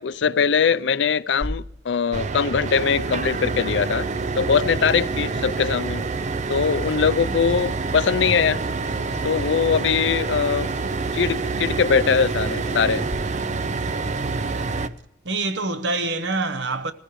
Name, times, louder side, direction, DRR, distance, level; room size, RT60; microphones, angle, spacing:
voice 1, 0.0-4.1 4.4-6.0 6.5-8.6 9.2-10.7 11.1-13.0, left 6 dB, 75° left, 0.5 m, -21 dB
Water tap faucet / Sink (filling or washing), 1.4-13.2, equal, 20° right, 2.2 m, -40 dB
sound 1, 2.1-14.9, right 4 dB, 40° right, 0.5 m, -27 dB
voice 2, 14.0-14.9 15.2-16.9, right 3 dB, 70° right, 0.9 m, -27 dB
20.0 x 15.5 x 3.1 m
head